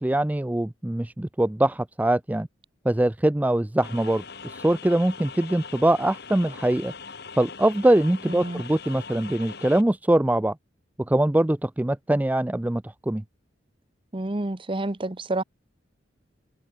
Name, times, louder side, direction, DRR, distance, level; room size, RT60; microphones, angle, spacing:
voice 1, 0.0-2.5 2.8-6.9 7.3-10.6 11.0-13.2, right 1 dB, 10° right, 0.4 m, -23 dB
sound 1, 3.8-9.8, left 5 dB, 60° left, 2.7 m, -41 dB
voice 2, 8.3-8.6 14.1-15.4, right 2 dB, 25° right, 1.0 m, -29 dB
open air
head